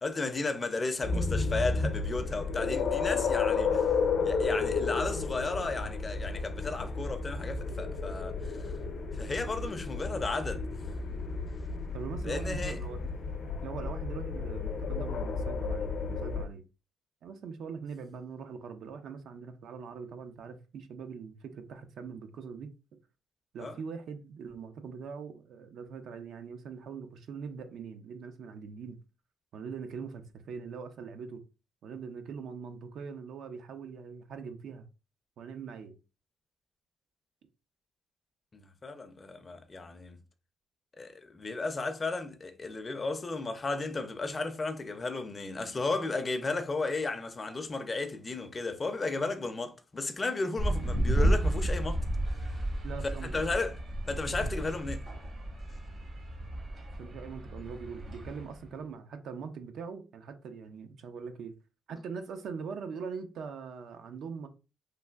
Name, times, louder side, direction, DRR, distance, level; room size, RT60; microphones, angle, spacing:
voice 1, 0.0-3.9 4.2-8.7 9.1-10.6 12.2-12.8 23.6-23.8 38.5-40.2 41.0-52.0 53.2-53.8 54.1-55.0, left 3 dB, 30° left, 0.4 m, -34 dB
sound 1, 1.0-16.5, left 4 dB, 75° left, 0.6 m, -32 dB
voice 2, 11.9-13.0 13.6-16.6 17.2-22.7 23.5-29.0 29.5-31.4 31.8-34.9 35.4-36.0 52.8-53.4 57.0-61.5 61.9-64.5, right 5 dB, 70° right, 0.4 m, -42 dB
sound 2, 50.6-58.6, right 1 dB, 50° right, 0.9 m, -32 dB
3.2 x 2.5 x 2.3 m
cardioid pair, 90°, 0 cm